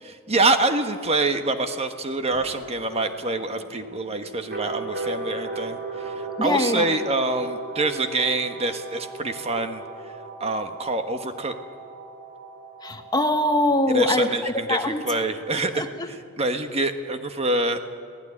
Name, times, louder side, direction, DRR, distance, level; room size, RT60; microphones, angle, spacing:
voice 1, 0.0-9.8 10.4-11.5 13.9-17.9, right 2 dB, 30° right, 7 dB, 1.4 m, -26 dB
sound 1, 2.3-15.9, right 2 dB, 55° right, 4.0 m, -37 dB
voice 2, 6.4-6.9 12.8-15.0 15.7-16.1, left 1 dB, 20° left, 7 dB, 1.1 m, -23 dB
24.5 x 16.5 x 9.9 m, 2.1 s
head